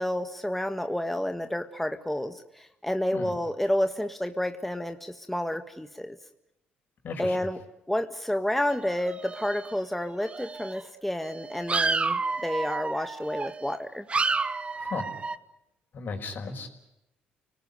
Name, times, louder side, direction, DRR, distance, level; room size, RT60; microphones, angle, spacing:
voice 1, 0.0-6.2 7.2-7.6 7.9-14.0, left 1 dB, 5° left, 8 dB, 1.6 m, -30 dB
voice 2, 7.0-7.4 14.7-15.1 15.9-16.7, left 4 dB, 55° left, 5 dB, 5.4 m, -35 dB
sound 1, 8.7-9.9 10.2-10.8 11.3-13.8 14.1-15.4, right 4 dB, 30° right, 1.3 m, -30 dB
29.5 x 19.0 x 9.7 m, 0.90 s
supercardioid pair, 70°, 4 cm